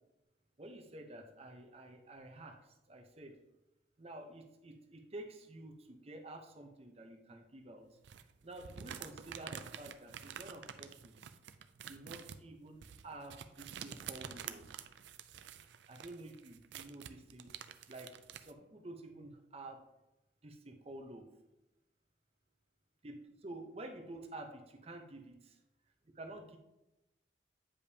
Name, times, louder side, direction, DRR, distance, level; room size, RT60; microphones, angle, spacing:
voice 1, 0.6-3.4 4.0-8.0 8.4-11.3 11.9-14.7 15.9-17.5 17.9-19.8 20.4-21.3 23.0-25.5 26.1-26.6, right 2 dB, 35° right, 4 dB, 0.8 m, -50 dB
sound 1, 8.0-18.5, right 8 dB, 75° right, 0.4 m, -49 dB
8.5 x 5.2 x 2.8 m, 0.96 s
head